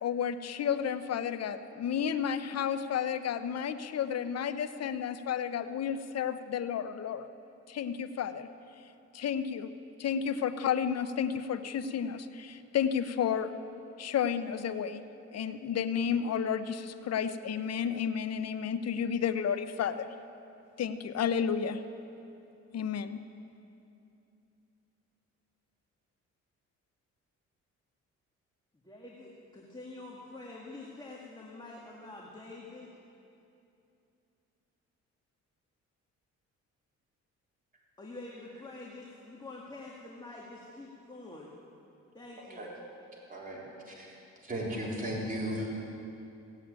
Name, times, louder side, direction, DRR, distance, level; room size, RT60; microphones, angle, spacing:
voice 1, 0.0-7.3 7.7-8.5 9.1-9.7 10.0-13.5 14.0-15.0 15.3-20.1 20.8-21.8 22.7-23.3, left 8 dB, 55° left, 11 dB, 0.8 m, -32 dB
voice 2, 28.8-32.9 38.0-41.5 42.1-42.6, left 2 dB, 15° left, -3 dB, 2.0 m, -46 dB
voice 3, 43.3-44.2 44.4-45.8, right 1 dB, 30° right, -4 dB, 3.9 m, -36 dB
16.5 x 8.4 x 8.9 m, 2.7 s
cardioid pair, 90°, 30 cm